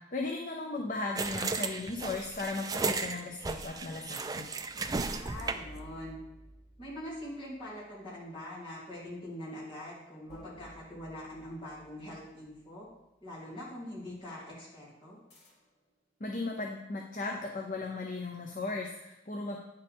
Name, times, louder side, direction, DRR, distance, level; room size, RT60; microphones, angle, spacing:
voice 1, 0.1-4.5 16.2-19.6, left 3 dB, 45° left, 1 dB, 0.7 m, -36 dB
sound 1, 1.2-5.8, right 4 dB, 20° right, 0.4 m, -34 dB
voice 2, 5.1-6.2 6.8-12.9 13.2-15.2, left 1 dB, 30° left, -7 dB, 3.1 m, -43 dB
sound 2, 5.3-8.1 10.3-13.0 15.3-15.9, right 1 dB, 65° left, 3.2 m, -53 dB
9.3 x 6.8 x 3.6 m, 0.95 s
head